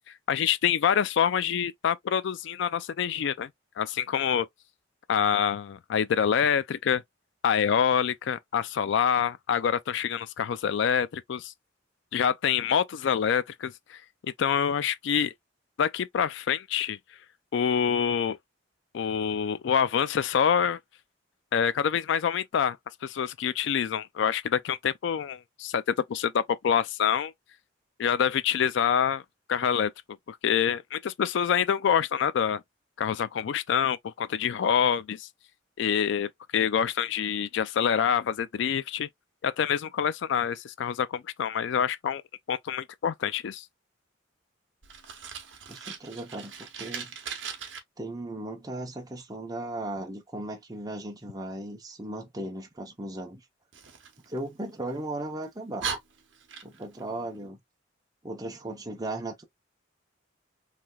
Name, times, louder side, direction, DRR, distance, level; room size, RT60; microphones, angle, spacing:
voice 1, 0.3-3.5 3.8-4.5 5.1-7.0 7.4-11.5 12.1-15.3 15.8-17.0 17.5-18.4 18.9-20.8 21.5-22.8 23.0-27.3 28.0-29.2 29.5-29.9 30.3-32.6 33.0-35.3 35.8-39.1 39.4-42.2 42.5-43.6, left 8 dB, 70° left, 0.3 m, -26 dB
Fire, 44.8-47.8 53.7-55.0 55.4-55.5 55.8-57.0, right 6 dB, 70° right, 0.9 m, -39 dB
voice 2, 45.7-47.1 48.0-53.4 54.3-55.9 56.6-57.6 58.2-59.4, right 1 dB, 20° right, 0.8 m, -36 dB
3.2 x 2.7 x 2.3 m
head